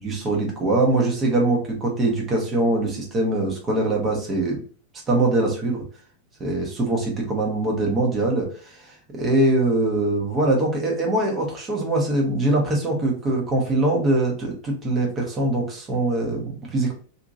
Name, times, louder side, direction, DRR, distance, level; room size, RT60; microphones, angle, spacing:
voice 1, 0.0-4.6 5.1-5.8 6.4-16.9, right 2 dB, 25° right, 0 dB, 1.0 m, -23 dB
2.8 x 2.7 x 2.5 m, 0.44 s
figure-of-eight pair, 90°, 0 cm